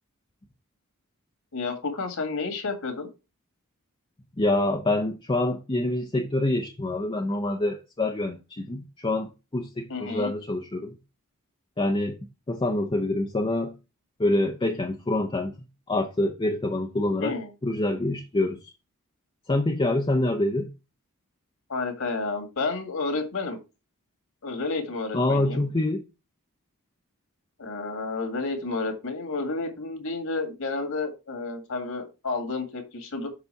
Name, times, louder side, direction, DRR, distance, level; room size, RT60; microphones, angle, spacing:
voice 1, 1.5-3.1 9.9-10.3 17.2-17.5 21.7-23.6 24.4-25.7 27.6-33.3, left 3 dB, 70° left, 2.0 m, -31 dB
voice 2, 4.4-11.0 11.8-12.2 12.5-13.7 14.2-15.6 15.9-17.3 17.6-18.6 19.5-20.7 25.1-26.0, left 2 dB, 25° left, 0.6 m, -26 dB
6.9 x 4.1 x 5.6 m
head